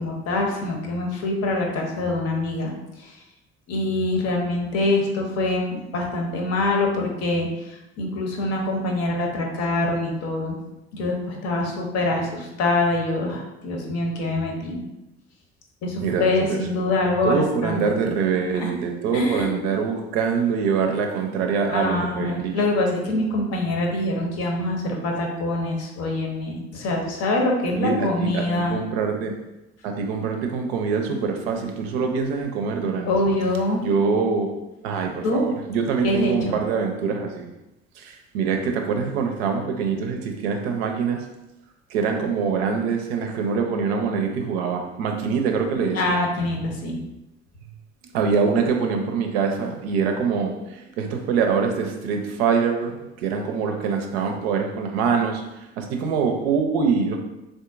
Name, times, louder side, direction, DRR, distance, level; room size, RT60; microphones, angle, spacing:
voice 1, 0.0-2.7 3.0-3.1 3.7-10.5 10.9-14.8 15.8-17.8 18.0-18.2 18.6-18.7 19.1-19.7 21.7-28.8 33.0-33.8 35.2-35.4 36.0-36.6 45.9-47.0, left 2 dB, 50° left, 0 dB, 0.8 m, -24 dB
voice 2, 16.0-16.9 17.2-22.5 27.7-29.4 29.8-33.1 33.8-34.5 34.8-37.5 38.0-41.2 41.9-46.2 48.1-57.2, right 5 dB, 65° right, 3 dB, 0.5 m, -24 dB
3.5 x 2.6 x 2.4 m, 0.95 s
figure-of-eight pair, 55°, 33 cm